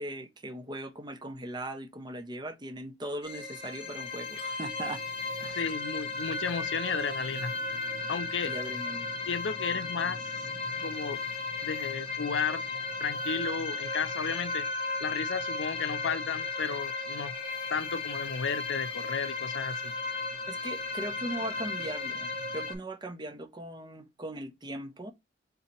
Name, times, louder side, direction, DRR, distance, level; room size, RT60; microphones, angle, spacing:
voice 1, 0.0-5.0 5.4-5.6 8.4-9.1 20.5-25.1, right 1 dB, 25° right, 0.8 m, -39 dB
sound 1, 3.2-22.7, left 3 dB, 30° left, 1.1 m, -35 dB
voice 2, 5.5-7.5 8.1-8.5 9.2-10.3 10.8-11.2 11.6-12.6 13.0-14.7 15.0-17.3 17.7-19.9, left 6 dB, 80° left, 0.6 m, -33 dB
3.8 x 2.8 x 4.3 m
head